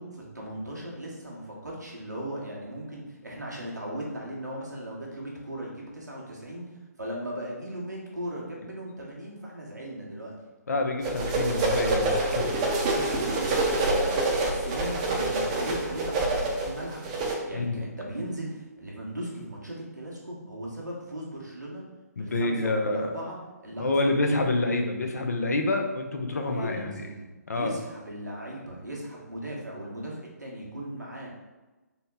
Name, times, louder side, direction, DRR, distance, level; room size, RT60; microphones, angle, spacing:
voice 1, 0.0-6.7 7.0-10.3 13.3-17.1 17.5-21.8 22.2-23.4 23.6-23.9 26.4-31.3, right 1 dB, 85° right, -4 dB, 1.1 m, -38 dB
voice 2, 10.7-12.5 12.9-13.2 17.5-17.8 22.2-23.1 23.8-27.0 27.5-27.7, left 2 dB, 65° left, 3 dB, 0.6 m, -27 dB
sound 1, 11.0-17.3, right 2 dB, 25° right, 0.6 m, -26 dB
3.9 x 2.2 x 3.9 m, 1.2 s
figure-of-eight pair, 135°, 9 cm